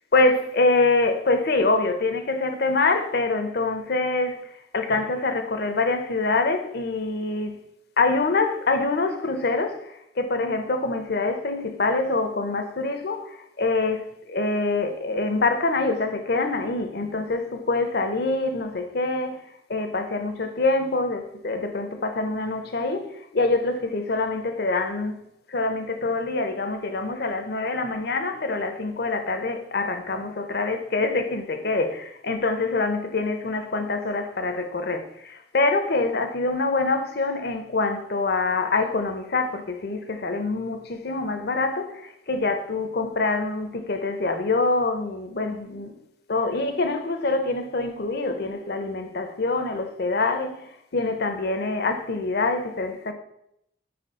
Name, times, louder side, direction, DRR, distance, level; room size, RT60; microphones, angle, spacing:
voice 1, 0.1-4.5 4.7-7.5 8.0-19.4 19.7-25.2 25.5-45.9 46.3-53.1, left 3 dB, 60° left, 0.7 m, -25 dB
4.8 x 4.3 x 4.9 m
head